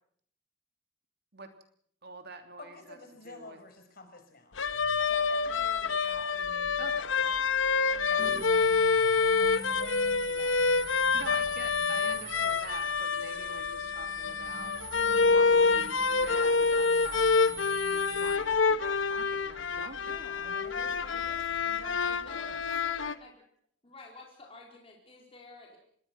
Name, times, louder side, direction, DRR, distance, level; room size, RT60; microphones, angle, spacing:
voice 1, 2.0-3.0 3.2-3.6 6.8-7.1 11.1-14.7 15.2-20.6, right 3 dB, 55° right, 6 dB, 3.1 m, -46 dB
voice 2, 2.6-4.6 5.0-7.5 7.9-10.6 20.0-22.6, left 2 dB, 50° left, 6 dB, 5.0 m, -50 dB
sound 1, 4.6-23.1, left 5 dB, 80° left, 1.1 m, -27 dB
sound 2, 8.2-18.4, right 7 dB, 30° right, 0.9 m, -44 dB
voice 3, 22.0-23.3 23.8-25.8, left 2 dB, 30° left, -1 dB, 4.3 m, -50 dB
26.0 x 21.0 x 6.0 m, 0.63 s
head